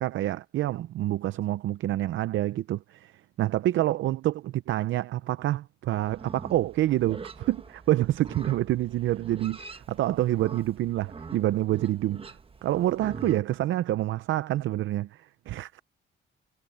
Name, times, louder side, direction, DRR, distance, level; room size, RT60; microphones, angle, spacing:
voice 1, 0.0-3.1 3.4-12.3 12.6-15.8, right 14 dB, 75° right, 0.6 m, -27 dB
Livestock farm animals working animals, 6.1-13.4, right 4 dB, 30° right, 1.3 m, -44 dB
cardioid pair, 90°, 20 cm